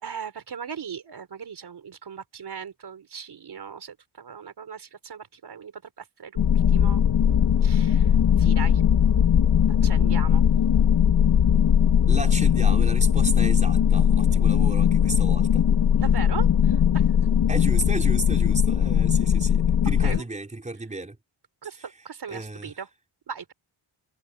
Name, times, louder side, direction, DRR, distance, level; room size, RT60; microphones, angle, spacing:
voice 1, 0.0-7.0 7.6-8.1 8.4-8.8 9.6-10.4 16.0-17.1 20.0-20.2 21.6-22.9 23.3-23.5, right 7 dB, 55° right, 4.3 m, -38 dB
sound 1, 6.4-20.2, left 8 dB, 65° left, 1.7 m, -19 dB
voice 2, 12.1-15.6 17.5-21.2 21.8-21.9 22.3-22.7, right 2 dB, 15° right, 4.5 m, -33 dB
wide cardioid pair, 145°, 47 cm